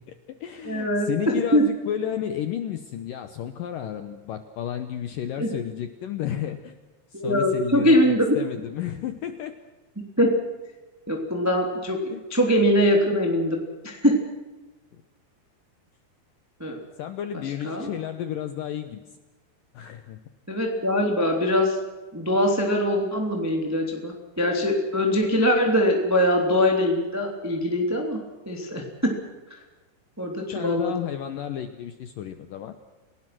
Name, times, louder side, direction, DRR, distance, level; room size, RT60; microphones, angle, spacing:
voice 1, 0.1-6.8 7.1-9.5 12.1-12.2 17.0-19.0 19.7-20.2 30.5-32.7, left 10 dB, 85° left, 9 dB, 1.9 m, -32 dB
voice 2, 0.6-1.6 5.4-5.5 7.1-8.4 10.2-10.3 11.1-12.0 12.3-14.2 16.6-16.8 17.6-17.9 20.5-21.8 22.1-28.2 28.4-29.2 29.5-29.6 30.2-30.9, equal, 5° right, 1 dB, 2.2 m, -22 dB
30.0 x 18.5 x 6.2 m, 1.2 s
omnidirectional pair, 5.4 m